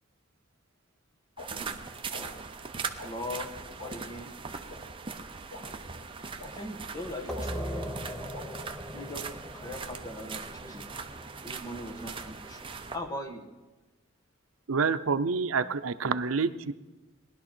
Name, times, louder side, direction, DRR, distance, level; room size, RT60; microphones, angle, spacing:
sound 1, 1.4-1.5 2.1-2.2 3.0-3.1 3.8-3.9 4.7-4.8 5.5-5.6 6.4-6.5 7.3-7.5 8.3-8.4, left 3 dB, 65° left, 3.3 m, -42 dB
sound 2, 1.4-13.0, right 5 dB, 25° right, 0.8 m, -40 dB
voice 1, 3.0-3.5 3.8-4.3 6.4-8.0 8.9-9.3 9.5-10.9 11.4-13.5, left 1 dB, 20° left, 3 dB, 1.5 m, -40 dB
sound 3, 7.3-12.6, equal, 5° left, 0.8 m, -40 dB
voice 2, 14.7-16.7, right 5 dB, 90° right, 12 dB, 0.6 m, -28 dB
19.5 x 11.5 x 4.4 m, 1.2 s
head